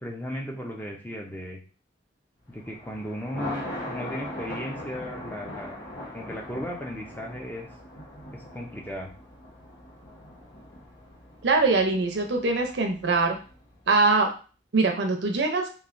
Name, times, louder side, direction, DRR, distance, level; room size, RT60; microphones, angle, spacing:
voice 1, 0.0-1.6 2.5-5.8 6.1-7.7 8.3-9.1, equal, 10° left, 0 dB, 0.5 m, -36 dB
Thunder, 2.5-13.8, left 1 dB, 75° left, 0.9 m, -40 dB
voice 2, 11.4-13.4 13.9-14.3 14.7-15.7, right 3 dB, 70° right, 3 dB, 0.5 m, -22 dB
3.1 x 2.3 x 2.5 m, 0.36 s
head